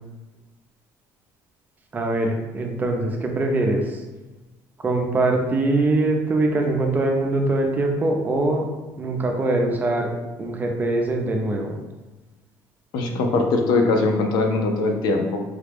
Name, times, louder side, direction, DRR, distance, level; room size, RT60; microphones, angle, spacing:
voice 1, 1.9-4.0 4.8-8.7 9.0-10.1 10.4-11.8, right 2 dB, 25° right, 2 dB, 0.6 m, -22 dB
voice 2, 12.9-15.4, left 3 dB, 75° left, 3 dB, 0.6 m, -21 dB
4.9 x 2.3 x 3.5 m, 1.1 s
cardioid pair, 135°, 7 cm